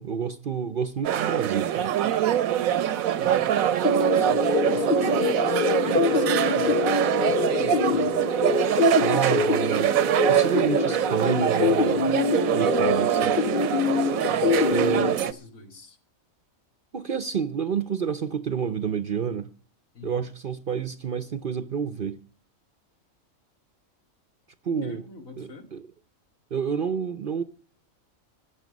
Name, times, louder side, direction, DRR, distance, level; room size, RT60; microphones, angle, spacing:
voice 1, 0.0-1.9 9.0-10.0 10.3-12.2 12.5-13.5 14.6-15.3 16.9-19.5 20.0-22.2 24.6-25.0 25.4-25.9 26.5-27.4, right 7 dB, 50° right, 0.7 m, -29 dB
sound 1, 1.0-15.3, right 10 dB, 90° right, 1.2 m, -24 dB
voice 2, 2.7-3.5 3.8-6.9 7.2-8.2 14.3-16.0 19.9-20.3 24.8-25.7, left 3 dB, 75° left, 2.6 m, -41 dB
sound 2, 3.8-15.1, left 5 dB, 45° left, 1.0 m, -25 dB
14.5 x 9.8 x 5.2 m
omnidirectional pair, 1.4 m